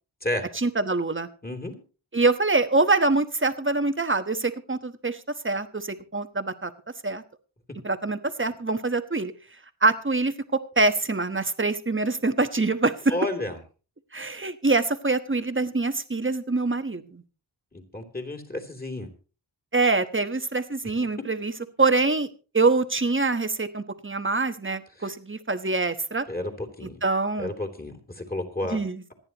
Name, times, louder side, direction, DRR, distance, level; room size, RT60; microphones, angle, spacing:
voice 1, 0.5-1.3 2.1-6.7 7.0-7.2 7.8-9.3 9.8-13.1 14.1-17.2 19.7-21.5 21.8-22.3 22.5-26.2 26.8-27.5 28.7-29.0, right 3 dB, 25° right, 9 dB, 1.2 m, -25 dB
voice 2, 1.4-1.7 13.1-13.6 17.7-19.1 26.3-27.0 27.4-28.8, left 1 dB, 20° left, 4 dB, 3.1 m, -31 dB
26.5 x 9.7 x 3.0 m, 0.35 s
wide cardioid pair, 70°, 47 cm